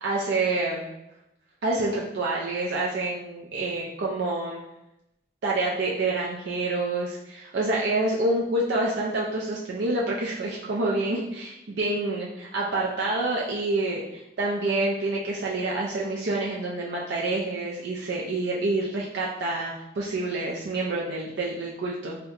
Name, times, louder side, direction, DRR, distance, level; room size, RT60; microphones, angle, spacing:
voice 1, 0.0-0.9 1.6-4.6 5.4-22.2, right 2 dB, 75° right, -3 dB, 0.4 m, -27 dB
3.7 x 2.2 x 2.7 m, 0.85 s
head